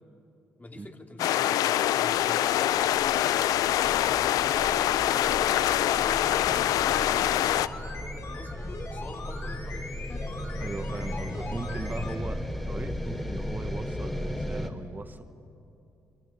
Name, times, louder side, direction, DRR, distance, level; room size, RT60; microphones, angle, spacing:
voice 1, 0.6-3.5 4.2-8.6 8.9-9.8, left 2 dB, 25° left, 4 dB, 2.8 m, -45 dB
sound 1, 1.2-7.7, left 12 dB, 75° left, 0.6 m, -24 dB
sound 2, 2.4-14.7, left 1 dB, 5° left, 3.1 m, -36 dB
sound 3, 6.2-12.2 12.5-12.6, left 3 dB, 50° left, 3.9 m, -41 dB
voice 2, 10.6-12.4 12.7-15.2, right 3 dB, 30° right, 8 dB, 1.3 m, -39 dB
27.5 x 22.5 x 8.7 m, 2.8 s
hypercardioid pair, 50°, 6 cm